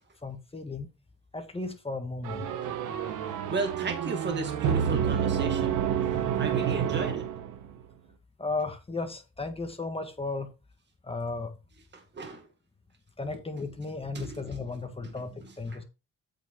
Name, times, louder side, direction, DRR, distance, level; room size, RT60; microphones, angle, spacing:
voice 1, 0.2-0.9 1.3-2.5 8.4-10.5 11.0-11.5 13.2-15.8, left 3 dB, 20° left, 1.6 m, -35 dB
sound 1, 2.2-7.8, right 8 dB, 90° right, 1.2 m, -29 dB
voice 2, 3.5-5.8 6.4-7.3 11.9-12.5 14.1-14.6 15.0-15.1 15.4-15.8, right 3 dB, 35° right, 2.1 m, -35 dB
8.4 x 6.1 x 3.7 m
cardioid pair, 90°, 30 cm